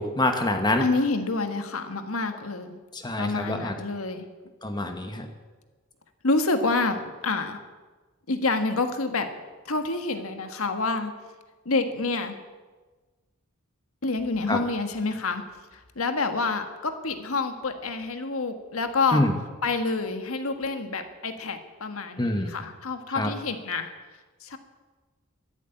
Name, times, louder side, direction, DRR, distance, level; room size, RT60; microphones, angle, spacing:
voice 1, 0.0-0.8 2.9-3.7 4.6-5.3 14.5-14.6 19.1-19.3 22.2-22.5 23.1-23.3, left 1 dB, 20° left, 5 dB, 1.3 m, -25 dB
voice 2, 0.8-2.8 3.2-4.3 6.2-7.6 8.3-9.3 9.6-11.1 11.6-12.4 14.0-15.4 15.7-19.3 19.6-23.9 24.4-24.6, left 3 dB, 75° left, 7 dB, 1.6 m, -28 dB
13.0 x 12.0 x 9.1 m, 1.3 s
head